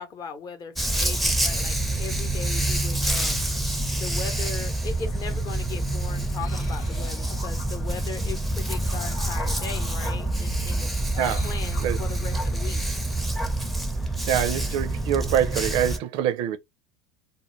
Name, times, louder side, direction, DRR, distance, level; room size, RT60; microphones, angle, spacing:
voice 1, 0.0-3.3 4.0-13.0, left 6 dB, 35° left, 0.7 m, -38 dB
Dog, 0.8-16.0, right 2 dB, ahead, 0.5 m, -27 dB
sound 1, 4.9-13.6, left 4 dB, 75° left, 0.8 m, -46 dB
voice 2, 14.3-16.6, right 10 dB, 50° right, 0.4 m, -25 dB
2.2 x 2.1 x 3.1 m
hypercardioid pair, 85°, 11 cm